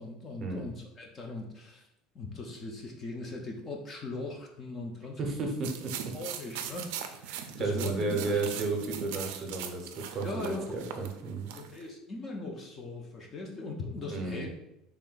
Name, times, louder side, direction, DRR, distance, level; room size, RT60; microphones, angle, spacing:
voice 1, 0.0-1.9 2.1-5.2 6.1-8.5 10.2-10.7 11.6-14.5, left 2 dB, 20° left, 2 dB, 0.4 m, -40 dB
voice 2, 5.2-6.1 7.3-11.5 14.1-14.5, right 3 dB, 25° right, 2 dB, 0.6 m, -33 dB
sound 1, 5.6-11.8, right 9 dB, 75° right, 0.4 m, -40 dB
3.3 x 2.5 x 3.8 m, 0.86 s
cardioid pair, 180°, 0 cm